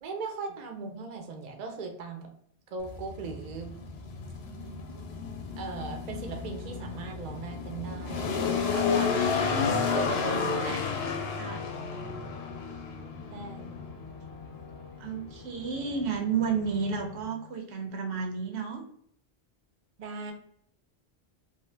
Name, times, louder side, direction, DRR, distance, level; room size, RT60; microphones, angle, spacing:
voice 1, 0.0-2.3 2.7-3.7 5.6-9.5 9.9-11.1 11.6-11.7 13.3-13.7 20.0-20.3, right 4 dB, 55° right, 4 dB, 0.5 m, -38 dB
sound 1, 2.8-17.3, left 5 dB, 75° left, 0.8 m, -32 dB
Wind instrument woodwind instrument, 9.4-17.6, left 6 dB, 30° left, 0.6 m, -49 dB
voice 2, 15.0-18.8, right 5 dB, 80° right, 4 dB, 0.9 m, -31 dB
2.7 x 2.1 x 3.1 m, 0.68 s
omnidirectional pair, 1.1 m